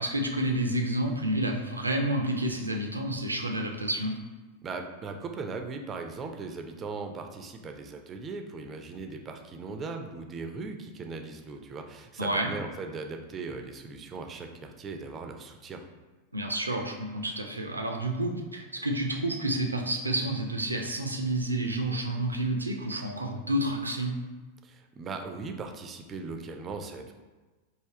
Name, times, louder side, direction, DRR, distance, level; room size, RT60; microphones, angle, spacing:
voice 1, 0.0-4.1 12.2-12.5 16.3-24.1, right 1 dB, 80° right, 3 dB, 0.4 m, -29 dB
voice 2, 4.6-15.8 24.6-27.1, right 4 dB, 25° right, 4 dB, 0.4 m, -38 dB
3.3 x 2.6 x 3.6 m, 1.2 s
figure-of-eight pair, 90°, 0 cm